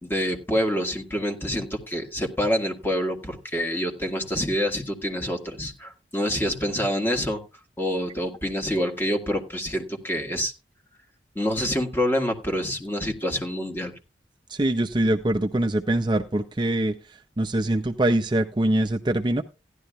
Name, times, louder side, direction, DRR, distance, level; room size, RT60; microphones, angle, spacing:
voice 1, 0.0-7.4 7.8-10.5 11.3-13.9, equal, 10° left, 3 dB, 1.7 m, -27 dB
voice 2, 14.5-16.9 17.4-19.4, right 1 dB, 25° right, 7 dB, 0.5 m, -23 dB
15.5 x 11.5 x 2.3 m, 0.27 s
head